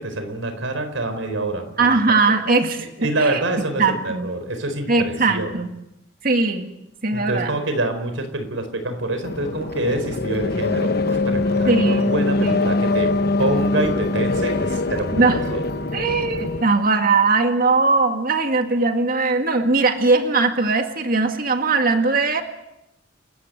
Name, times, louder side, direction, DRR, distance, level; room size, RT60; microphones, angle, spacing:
voice 1, 0.0-1.7 2.1-2.2 3.0-5.6 7.1-13.1 13.4-15.6, right 2 dB, 80° right, 8 dB, 4.6 m, -26 dB
voice 2, 1.8-3.4 3.8-4.3 4.9-5.7 6.2-6.7 7.0-7.5 11.7-12.1 12.4-12.6 15.1-15.4 15.9-22.4, right 3 dB, 50° right, 5 dB, 2.0 m, -20 dB
sound 1, 9.2-16.6, left 2 dB, 55° left, 1.3 m, -23 dB
29.5 x 14.5 x 9.2 m, 0.88 s
head